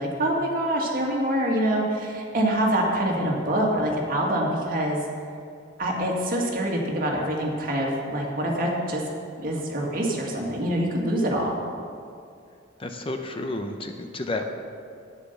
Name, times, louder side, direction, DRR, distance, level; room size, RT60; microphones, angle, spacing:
voice 1, 0.0-5.0 5.8-9.0 9.4-11.6, right 1 dB, 50° right, -2 dB, 2.2 m, -25 dB
voice 2, 12.8-14.5, left 2 dB, 30° left, 5 dB, 0.7 m, -31 dB
10.0 x 9.4 x 6.9 m, 2.4 s
head